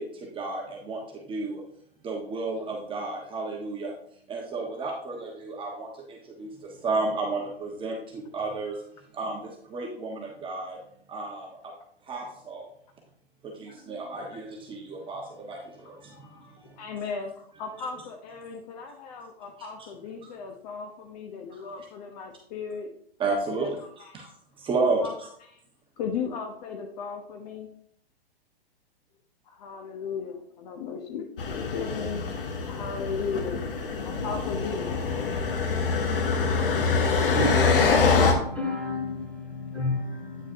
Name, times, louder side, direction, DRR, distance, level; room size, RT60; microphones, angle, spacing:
voice 1, 0.0-1.6 2.0-3.9 4.3-8.8 9.1-10.8 11.1-11.7 12.0-12.7 13.4-16.8 21.5-21.7 23.2-23.8 24.1-24.3 24.6-25.3, right 3 dB, 15° right, 1.2 m, -32 dB
voice 2, 16.1-22.9 23.5-24.3 25.0-25.1 25.5-25.6 26.0-27.7 29.5-32.2 32.7-33.6 34.0-34.9 36.4-37.8, left 6 dB, 40° left, 0.9 m, -36 dB
sound 1, 31.4-38.3, left 4 dB, 60° left, 1.5 m, -25 dB
voice 3, 38.0-40.5, left 3 dB, 5° left, 2.1 m, -31 dB
8.9 x 6.1 x 2.7 m
figure-of-eight pair, 120°, 31 cm